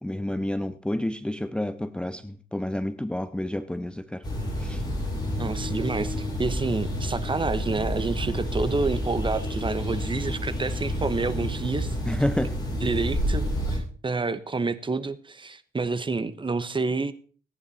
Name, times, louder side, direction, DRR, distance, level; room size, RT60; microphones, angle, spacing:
voice 1, 0.0-4.2 4.6-4.8 12.1-12.5, left 1 dB, 5° left, 11 dB, 0.7 m, -29 dB
sound 1, 4.2-13.8, equal, 20° left, 7.7 m, -29 dB
voice 2, 5.4-12.0 12.7-17.1, right 3 dB, 25° right, 13 dB, 1.2 m, -29 dB
17.5 x 10.5 x 4.3 m, 0.41 s
cardioid pair, 90°, 20 cm